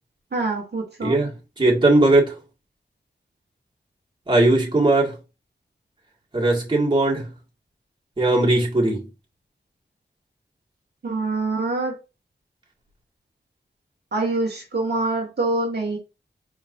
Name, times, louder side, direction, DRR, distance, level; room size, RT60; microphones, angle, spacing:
voice 1, 0.3-1.2 11.0-12.0 14.1-16.0, right 2 dB, 60° right, 1.5 m, -25 dB
voice 2, 1.0-2.4 4.3-5.2 6.3-7.3 8.2-9.1, right 2 dB, 25° right, 2.0 m, -19 dB
4.8 x 3.7 x 2.6 m
wide cardioid pair, 85°, 19 cm